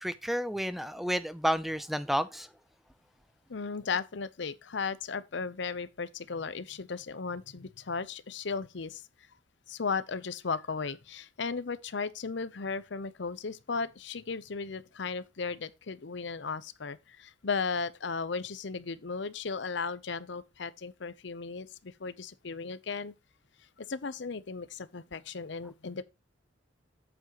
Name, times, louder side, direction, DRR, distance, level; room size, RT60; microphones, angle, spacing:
voice 1, 0.0-2.5, equal, ahead, 0.3 m, -31 dB
voice 2, 3.5-9.0 9.7-23.1 23.8-26.0, left 5 dB, 65° left, 0.7 m, -36 dB
8.7 x 8.1 x 3.0 m
head